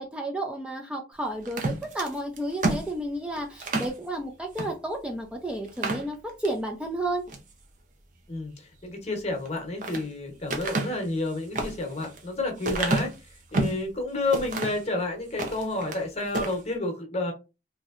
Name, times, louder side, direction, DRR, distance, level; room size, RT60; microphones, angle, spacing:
voice 1, 0.0-7.2, right 1 dB, 5° right, 0.3 m, -32 dB
sound 1, 1.4-4.0 4.5-4.7 5.1-5.2 5.6-6.6 7.1-7.5 9.3-10.0 10.5-13.8 14.3-14.9 15.3-16.0 16.3-16.6, right 2 dB, 45° right, 0.6 m, -30 dB
voice 2, 8.3-13.1 13.5-17.3, left 2 dB, 40° left, 0.9 m, -30 dB
3.0 x 2.6 x 2.4 m
head